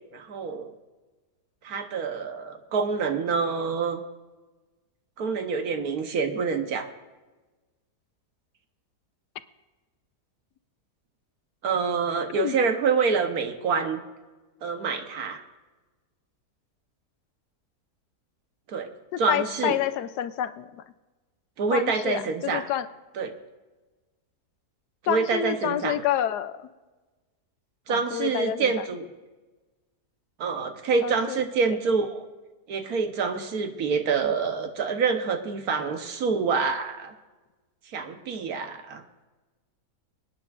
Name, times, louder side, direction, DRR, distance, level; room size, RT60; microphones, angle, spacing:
voice 1, 0.1-0.7 1.6-4.0 5.2-6.9 11.6-14.0 14.6-15.4 18.7-18.9 19.2-19.8 21.6-22.7 23.2-23.3 25.0-26.0 27.9-29.1 30.4-32.2 32.7-37.1 37.9-39.0, right 5 dB, 70° right, 6 dB, 1.4 m, -26 dB
voice 2, 19.1-20.8 21.7-22.9 25.1-26.7 27.9-28.7 31.0-31.4, left 11 dB, 85° left, 12 dB, 1.2 m, -28 dB
26.0 x 9.7 x 2.5 m, 1.2 s
omnidirectional pair, 1.7 m